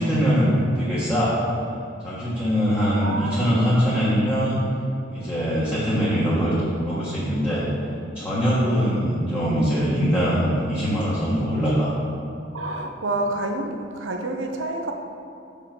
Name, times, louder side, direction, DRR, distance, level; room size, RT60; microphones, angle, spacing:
voice 1, 0.0-1.4 2.0-4.6 5.1-6.5 6.8-7.6 8.1-11.9, equal, 10° left, -10 dB, 1.4 m, -22 dB
voice 2, 3.0-3.7 8.5-9.0 12.5-14.9, right 2 dB, 80° right, 3 dB, 0.8 m, -29 dB
6.9 x 5.3 x 5.2 m, 2.6 s
head